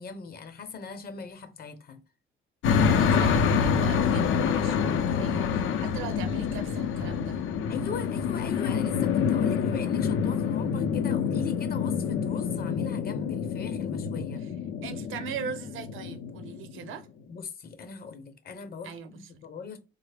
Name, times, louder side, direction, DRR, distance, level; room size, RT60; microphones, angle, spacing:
voice 1, 0.0-2.0 7.7-14.4 17.3-19.8, left 5 dB, 50° left, 0.8 m, -39 dB
sound 1, 2.6-16.9, left 6 dB, 85° left, 0.5 m, -27 dB
voice 2, 2.9-7.5 14.4-14.6 14.8-17.1 18.8-19.4, right 6 dB, 85° right, 0.6 m, -40 dB
3.6 x 2.0 x 3.3 m
cardioid pair, 90°, 20 cm